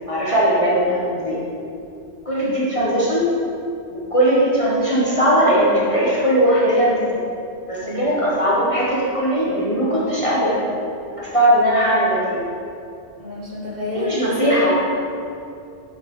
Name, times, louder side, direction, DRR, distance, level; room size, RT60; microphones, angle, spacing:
voice 1, 0.1-1.4 2.2-3.3 3.9-7.2 7.7-10.6 11.2-12.4 13.9-14.7, equal, 25° left, -8 dB, 1.5 m, -19 dB
voice 2, 13.2-14.7, left 1 dB, 35° right, -7 dB, 2.0 m, -29 dB
10.5 x 6.6 x 3.9 m, 2.5 s
omnidirectional pair, 1.3 m